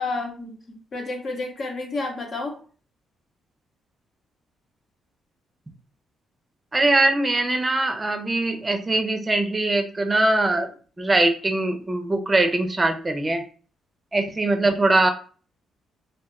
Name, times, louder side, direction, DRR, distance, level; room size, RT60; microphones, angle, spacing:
voice 1, 0.0-2.6, left 3 dB, 45° left, 3 dB, 0.9 m, -30 dB
voice 2, 6.7-10.7 11.0-13.4 14.1-15.1, right 2 dB, 20° right, 6 dB, 0.6 m, -21 dB
2.3 x 2.2 x 3.6 m, 0.39 s
cardioid pair, 90°, 0 cm